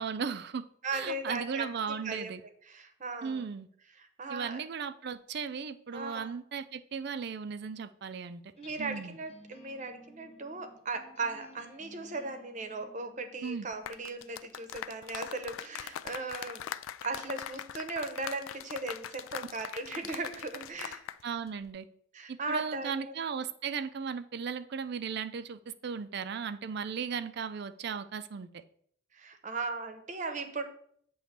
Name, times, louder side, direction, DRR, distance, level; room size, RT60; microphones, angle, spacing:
voice 1, 0.0-0.7 0.9-2.4 3.2-3.7 4.3-8.4 8.8-9.2 13.4-13.7 21.2-21.9 22.3-28.6, right 6 dB, 55° right, 12 dB, 0.4 m, -36 dB
voice 2, 0.8-2.3 2.7-3.5 4.2-4.6 5.9-6.3 8.6-16.6 17.0-21.1 22.1-23.1 29.1-30.6, right 3 dB, 40° right, 7 dB, 0.8 m, -37 dB
sound 1, 8.5-14.5, left 1 dB, 30° left, 0.7 m, -56 dB
sound 2, 13.7-21.2 21.5-21.7, left 10 dB, 80° left, 0.3 m, -42 dB
7.9 x 3.1 x 5.9 m, 0.64 s
head